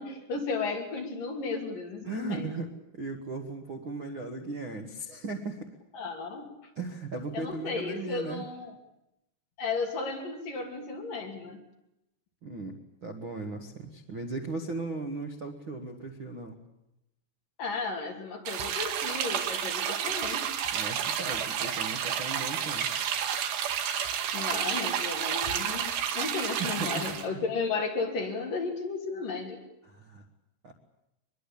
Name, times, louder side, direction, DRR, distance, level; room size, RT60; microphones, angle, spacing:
voice 1, 0.0-2.5 5.9-6.5 7.3-8.8 9.6-11.6 17.6-20.6 24.3-29.6, left 4 dB, 55° left, 3 dB, 4.3 m, -34 dB
voice 2, 2.0-2.7 2.9-5.7 6.7-8.5 12.4-16.6 20.7-23.0 26.6-27.0 27.3-27.4 29.8-30.2 30.6-30.7, right 3 dB, 45° right, 4 dB, 1.7 m, -37 dB
sound 1, 18.5-27.3, right 8 dB, 90° right, 4.0 m, -31 dB
24.0 x 22.0 x 8.7 m, 0.86 s
omnidirectional pair, 4.9 m